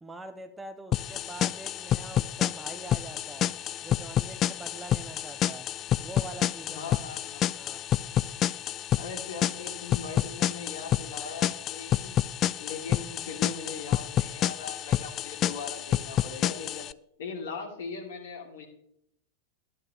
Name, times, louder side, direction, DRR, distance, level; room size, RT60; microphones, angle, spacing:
voice 1, 0.0-3.5 3.8-5.7 6.0-6.9 7.5-7.8, right 2 dB, 10° right, 9 dB, 0.8 m, -44 dB
sound 1, 0.9-16.9, left 11 dB, 30° left, 0.3 m, -29 dB
voice 2, 6.7-7.5 9.0-12.1 12.6-16.9 17.2-18.6, left 5 dB, 60° left, -1 dB, 3.3 m, -40 dB
13.5 x 11.0 x 3.4 m, 0.74 s
figure-of-eight pair, 90°, 0 cm